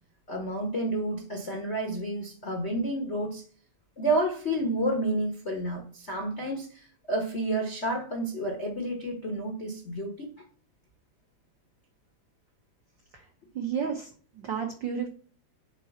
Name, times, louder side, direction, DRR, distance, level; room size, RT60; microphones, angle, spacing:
voice 1, 0.3-3.4 4.0-10.3, right 1 dB, 90° left, 1 dB, 0.6 m, -30 dB
voice 2, 13.5-14.1 14.4-15.1, right 7 dB, 85° right, 3 dB, 1.0 m, -31 dB
6.0 x 4.1 x 5.8 m, 0.43 s
omnidirectional pair, 3.3 m